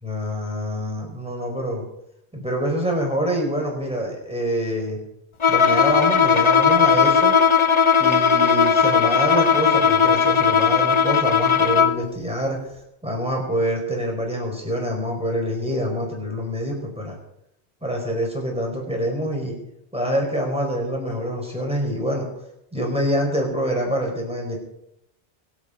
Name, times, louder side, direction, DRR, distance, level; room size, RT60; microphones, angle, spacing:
voice 1, 0.0-1.8 2.3-5.0 5.5-7.4 8.0-12.6 13.0-17.2 17.8-19.6 19.9-22.3 22.7-24.6, equal, 5° right, 0 dB, 4.8 m, -26 dB
Bowed string instrument, 5.4-12.1, left 6 dB, 35° left, 0.6 m, -17 dB
25.5 x 8.6 x 5.1 m, 0.80 s
omnidirectional pair, 1.1 m